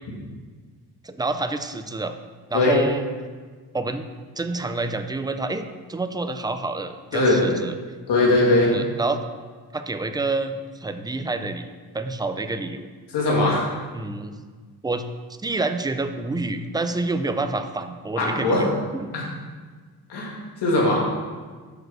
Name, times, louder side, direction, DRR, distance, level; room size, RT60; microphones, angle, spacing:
voice 1, 1.0-2.1 2.5-3.0 3.7-4.1 4.4-7.7 8.7-9.2 9.7-11.7 11.9-12.9 13.9-14.3 14.8-15.1 15.4-19.1, right 3 dB, 10° right, 8 dB, 0.3 m, -28 dB
voice 2, 7.1-7.5 8.1-8.7 13.1-13.7 18.2-18.7 19.1-19.2 20.1-20.4 20.6-21.0, left 2 dB, 90° left, -3 dB, 2.4 m, -20 dB
6.6 x 6.6 x 6.4 m, 1.5 s
wide cardioid pair, 165°, 39 cm